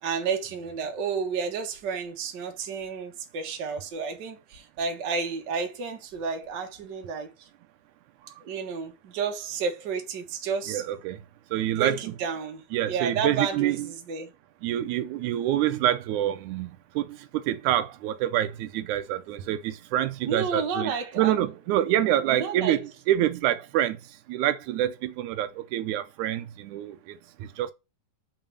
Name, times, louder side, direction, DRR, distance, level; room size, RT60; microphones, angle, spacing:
voice 1, 0.0-7.5 8.4-10.8 11.8-14.3 20.2-21.4 22.3-22.8, right 5 dB, 45° right, 1.5 m, -31 dB
voice 2, 10.7-11.2 11.5-12.0 12.7-13.8 14.6-20.9 21.2-22.8 23.1-24.0 24.3-27.0 27.6-27.7, right 12 dB, 80° right, 2.0 m, -26 dB
5.8 x 4.7 x 6.4 m
omnidirectional pair, 3.5 m